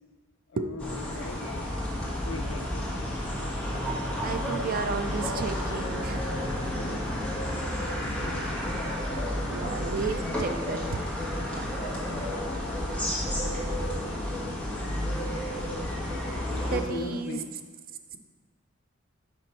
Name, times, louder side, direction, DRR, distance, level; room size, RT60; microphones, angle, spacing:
voice 1, 0.5-1.6 2.2-2.8 8.2-8.8 11.5-13.1 16.7-17.5, left 2 dB, 75° left, 4 dB, 0.7 m, -40 dB
sound 1, 0.8-16.8, left 1 dB, 5° left, 1.3 m, -31 dB
voice 2, 4.2-6.2 9.5-10.8 11.5-11.7 16.7-17.4, right 4 dB, 45° right, 8 dB, 0.4 m, -32 dB
5.1 x 4.5 x 5.4 m, 1.5 s
head